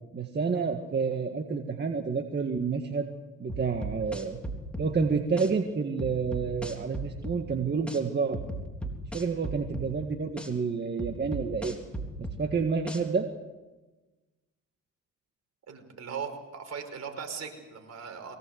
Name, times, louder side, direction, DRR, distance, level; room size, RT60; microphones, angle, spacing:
voice 1, 0.1-3.1 3.4-4.4 4.8-8.4 9.1-11.8 12.4-13.3, right 5 dB, 35° right, 4 dB, 1.9 m, -29 dB
sound 1, 3.5-4.9 5.4-5.5 6.0-7.4 7.9-8.0 8.3-9.9 10.4-10.5 11.0-12.4 12.9-13.0, right 1 dB, 5° left, 3.8 m, -36 dB
voice 2, 15.7-18.4, right 6 dB, 60° right, 5 dB, 5.4 m, -39 dB
23.5 x 18.5 x 8.1 m, 1.2 s
cardioid pair, 90°, 30 cm